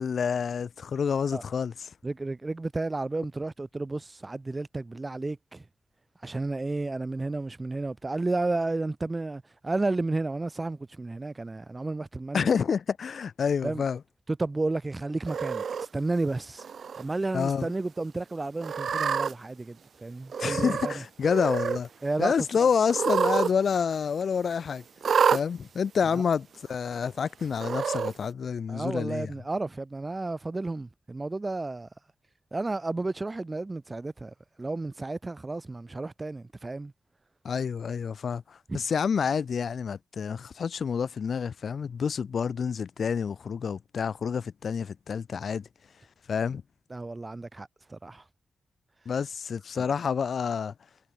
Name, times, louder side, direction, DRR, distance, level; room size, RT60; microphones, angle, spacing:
voice 1, 0.0-1.9 12.3-14.0 17.3-17.7 20.4-21.9 22.2-24.8 25.3-29.3 37.4-45.6 46.3-46.6 49.1-50.7, left 6 dB, 65° left, 2.8 m, -28 dB
voice 2, 2.0-5.6 6.2-12.5 13.6-13.8 14.4-15.6 15.9-16.6 17.0-21.0 22.0-22.3 22.6-22.7 26.1-26.2 28.7-31.9 32.5-36.9 38.7-38.8 46.9-48.2 49.8-49.9, right 2 dB, 20° right, 4.9 m, -32 dB
Cat, 15.3-15.9 16.6-17.0 17.4-17.5 18.6-19.3 20.3-21.0 21.2-21.8 22.9-23.5 23.8-23.9 25.0-25.4 26.3-26.4 27.5-28.1, right 6 dB, 70° right, 0.8 m, -27 dB
wide cardioid pair, 175°, 0 cm